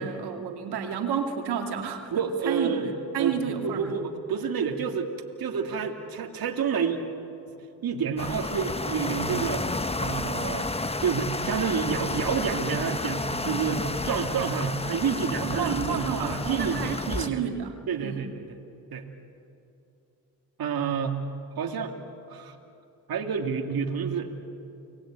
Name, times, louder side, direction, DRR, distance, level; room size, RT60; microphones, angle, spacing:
voice 1, 0.0-2.9 3.1-3.9 15.4-18.3, right 8 dB, 75° right, 3 dB, 2.7 m, -31 dB
voice 2, 2.1-2.9 3.2-5.1 5.4-7.0 7.8-9.7 10.0-10.7 11.0-17.4 17.9-18.4 18.9-19.1 20.6-21.2 21.6-21.9 22.3-22.6 23.1-24.3, right 6 dB, 60° right, 2 dB, 2.5 m, -29 dB
sound 1, 8.2-17.3, left 2 dB, 15° left, 1.3 m, -31 dB
30.0 x 20.5 x 9.0 m, 2.8 s
supercardioid pair, 60°, 40 cm